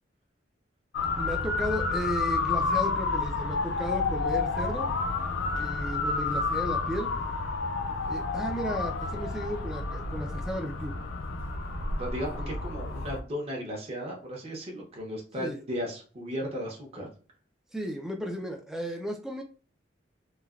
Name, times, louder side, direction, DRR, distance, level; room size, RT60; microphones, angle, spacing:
Motor vehicle (road) / Siren, 0.9-13.2, left 4 dB, 75° left, 0.4 m, -30 dB
voice 1, 1.2-4.9 5.6-7.1 8.1-10.9 12.4-12.5 15.4-15.6 17.7-19.4, equal, 5° right, 2 dB, 0.3 m, -34 dB
voice 2, 12.0-17.1, equal, 35° right, -1 dB, 0.7 m, -35 dB
3.1 x 2.1 x 2.3 m, 0.38 s
head